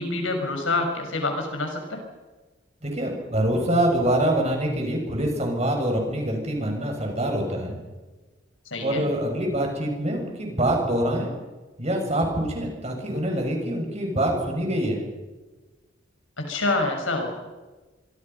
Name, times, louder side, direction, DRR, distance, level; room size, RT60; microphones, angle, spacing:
voice 1, 0.0-2.0 8.7-9.1 16.4-17.3, left 2 dB, 85° left, 4 dB, 5.9 m, -27 dB
voice 2, 2.8-7.8 8.8-11.3 11.8-15.0, right 1 dB, 35° right, 2 dB, 6.6 m, -25 dB
25.5 x 23.5 x 5.6 m, 1.2 s
head